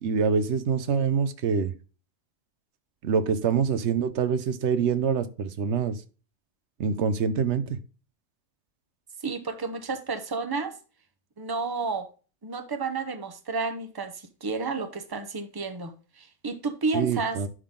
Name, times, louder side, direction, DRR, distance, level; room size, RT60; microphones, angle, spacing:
voice 1, 0.0-1.7 3.0-6.0 6.8-7.8 16.9-17.5, right 6 dB, 85° right, 1.1 m, -25 dB
voice 2, 9.2-10.7 11.4-12.1 12.4-17.4, right 4 dB, 20° right, 0.8 m, -31 dB
11.0 x 3.8 x 3.7 m
omnidirectional pair, 1.1 m